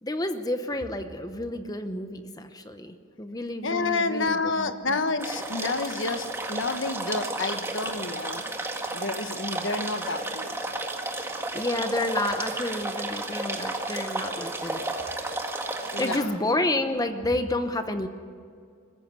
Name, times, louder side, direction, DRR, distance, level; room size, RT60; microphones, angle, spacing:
voice 1, 0.0-5.0 11.5-14.8 16.0-18.1, left 1 dB, 20° left, 8 dB, 0.9 m, -30 dB
voice 2, 3.6-8.4 8.9-10.5 13.7-13.9 15.9-16.3, left 3 dB, 60° left, 9 dB, 1.3 m, -29 dB
sound 1, 5.2-16.2, right 2 dB, 10° right, 1.7 m, -32 dB
21.5 x 15.0 x 9.5 m, 2.3 s
head